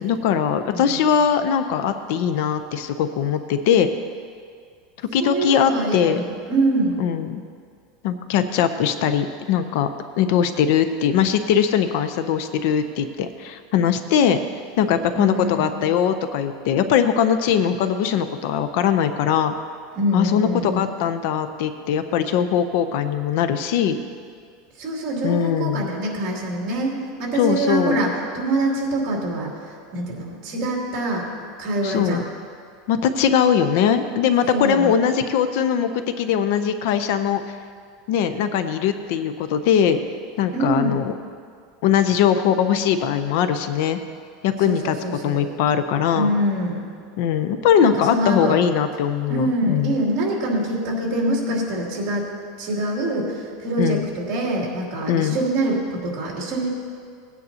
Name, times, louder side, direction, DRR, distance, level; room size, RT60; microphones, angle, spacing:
voice 1, 0.0-3.9 5.1-6.2 7.0-7.4 8.0-9.9 10.2-14.4 14.8-19.5 20.1-24.0 25.2-25.9 27.4-28.0 31.8-32.2 32.9-37.4 38.1-40.0 40.4-41.1 41.8-44.0 44.4-44.9 45.2-46.3 47.2-49.9 53.8-54.1 55.1-55.4, left 8 dB, 55° left, 9 dB, 0.6 m, -21 dB
voice 2, 0.7-1.0 5.2-7.0 15.1-15.7 19.9-20.9 24.8-31.3 31.6-32.2 34.5-34.9 40.5-41.0 44.6-45.5 46.1-46.9 47.8-48.6 49.3-52.3 52.6-56.7, right 1 dB, 40° right, -3 dB, 2.7 m, -25 dB
18.5 x 9.4 x 2.8 m, 2.1 s
supercardioid pair, 165°, 0 cm